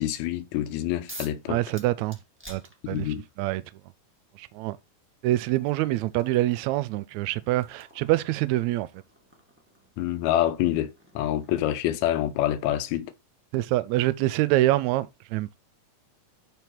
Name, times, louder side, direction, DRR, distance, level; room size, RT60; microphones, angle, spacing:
voice 1, 0.0-1.6 2.8-3.2 10.0-13.1, left 12 dB, 75° left, 1.9 m, -27 dB
sound 1, 1.1-1.4 1.7-3.3 4.4-4.5 5.0-11.7, right 1 dB, 10° right, 0.5 m, -49 dB
voice 2, 1.5-2.2 2.5-3.6 4.3-4.8 5.2-8.9 13.5-15.6, right 16 dB, 85° right, 1.6 m, -25 dB
11.0 x 3.6 x 4.5 m
omnidirectional pair, 3.9 m